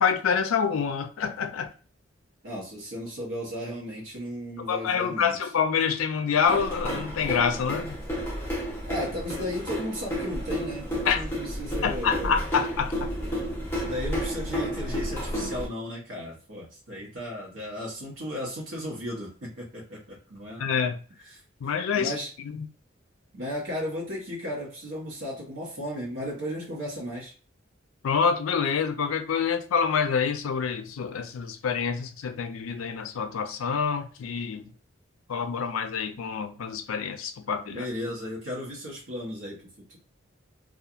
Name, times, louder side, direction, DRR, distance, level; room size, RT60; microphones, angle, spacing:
voice 1, 0.0-1.7 4.7-8.0 11.1-11.2 11.8-13.1 20.6-21.0 21.6-22.1 22.6-22.7 28.0-34.6 35.3-37.9, left 6 dB, 85° left, 0.4 m, -27 dB
voice 2, 2.4-5.4 8.9-12.4 13.7-20.6 21.2-21.4 21.9-22.3 23.3-27.3 37.7-39.6 39.9-40.0, equal, 70° right, 0.9 m, -35 dB
sound 1, 6.5-15.7, equal, 10° left, 0.6 m, -31 dB
2.7 x 2.4 x 2.4 m
head